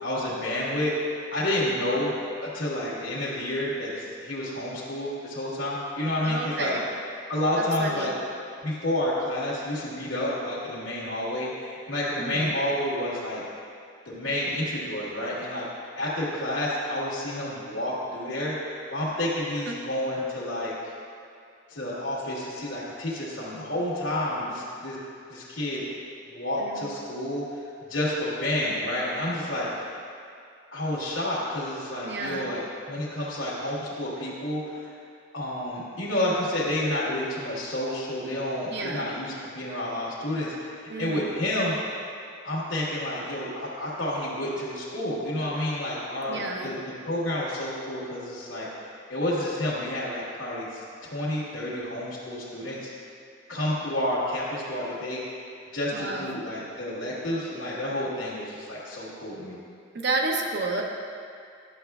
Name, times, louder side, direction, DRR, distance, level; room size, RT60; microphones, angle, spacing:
voice 1, 0.0-0.9 1.3-2.1 2.4-6.7 7.3-8.1 8.6-13.4 14.0-15.6 16.0-20.7 21.7-25.0 25.3-25.8 26.3-29.7 30.7-32.6 32.9-34.9 35.3-40.7 41.0-41.7 42.4-46.8 47.0-48.7 49.1-52.8 53.5-55.2 55.7-59.6, left 1 dB, 75° left, -10 dB, 1.4 m, -30 dB
voice 2, 6.2-6.8 7.8-8.1 12.2-12.5 19.7-19.8 26.6-26.9 32.0-32.5 38.7-39.1 40.9-41.3 46.3-46.7 55.9-56.4 59.9-60.8, right 3 dB, 55° right, 1 dB, 0.7 m, -31 dB
11.0 x 6.7 x 2.3 m, 2.3 s
head